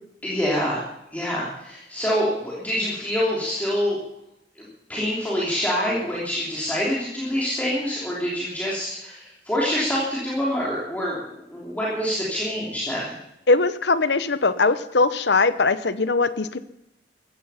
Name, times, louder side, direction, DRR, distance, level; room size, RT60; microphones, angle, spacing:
voice 1, 0.2-0.8 1.1-4.0 4.5-4.6 4.9-13.2, equal, 10° left, -6 dB, 3.2 m, -26 dB
voice 2, 13.5-16.6, left 3 dB, 70° left, 14 dB, 0.8 m, -20 dB
15.5 x 14.0 x 5.7 m, 0.87 s
head